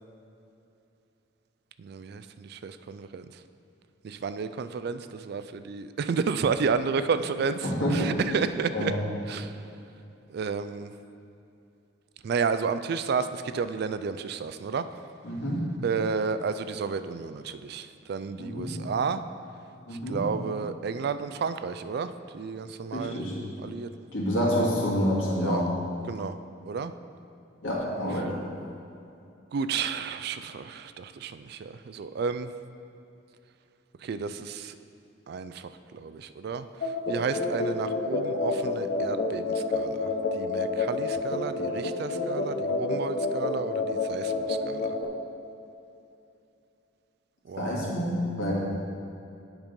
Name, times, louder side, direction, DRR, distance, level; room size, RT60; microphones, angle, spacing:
voice 1, 1.8-3.4 4.0-8.9 9.3-9.6 10.3-10.9 12.2-14.9 15.8-19.2 20.1-23.2 23.6-23.9 25.4-25.7 26.1-26.4 26.7-26.9 29.5-32.5 34.0-34.8 35.3-45.0 47.5-47.8, right 5 dB, 55° right, 12 dB, 0.3 m, -31 dB
voice 2, 7.6-8.1 8.7-9.0 15.2-15.6 18.4-18.7 19.9-20.2 22.9-23.3 24.1-25.7 27.6-28.3 47.6-48.5, equal, 90° left, -5 dB, 2.1 m, -28 dB
sound 1, 36.8-45.0, left 3 dB, 45° left, 0.7 m, -29 dB
8.9 x 5.2 x 5.3 m, 2.7 s
head